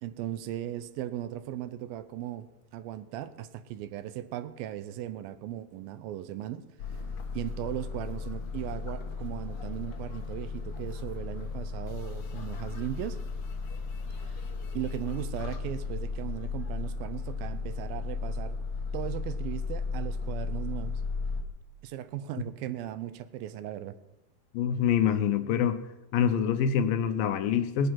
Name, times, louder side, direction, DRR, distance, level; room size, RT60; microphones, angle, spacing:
voice 1, 0.0-2.5 2.7-6.7 7.3-13.2 14.2-14.4 14.7-18.6 18.9-21.0 21.8-24.0, right 12 dB, 80° right, 13 dB, 2.5 m, -37 dB
sound 1, 6.8-21.4, left 4 dB, 60° left, 1.5 m, -35 dB
voice 2, 24.5-25.8 26.1-27.9, left 8 dB, 80° left, 10 dB, 2.6 m, -25 dB
18.5 x 9.6 x 5.8 m, 1.0 s
omnidirectional pair, 4.3 m